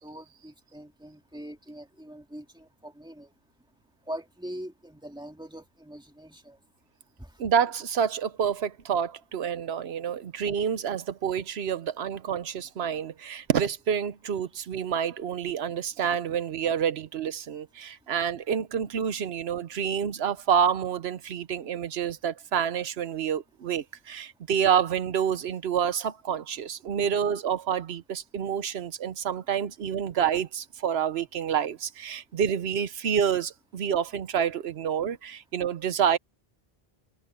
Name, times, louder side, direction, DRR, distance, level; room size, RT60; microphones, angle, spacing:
voice 1, 0.0-3.3 4.1-6.6, right 1 dB, 5° right, 2.1 m, -42 dB
voice 2, 7.4-36.2, right 8 dB, 85° right, 1.0 m, -28 dB
omnidirectional pair, 1.1 m